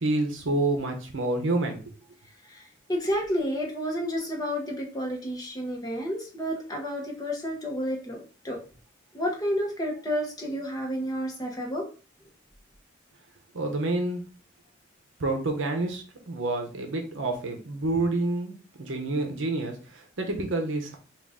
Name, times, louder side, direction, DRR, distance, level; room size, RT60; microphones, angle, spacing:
voice 1, 0.0-1.9 13.5-14.2 15.2-21.0, right 2 dB, 70° right, 3 dB, 0.8 m, -28 dB
voice 2, 2.5-8.6 9.1-11.8, equal, 20° left, 1 dB, 0.9 m, -30 dB
3.7 x 2.4 x 3.6 m, 0.37 s
head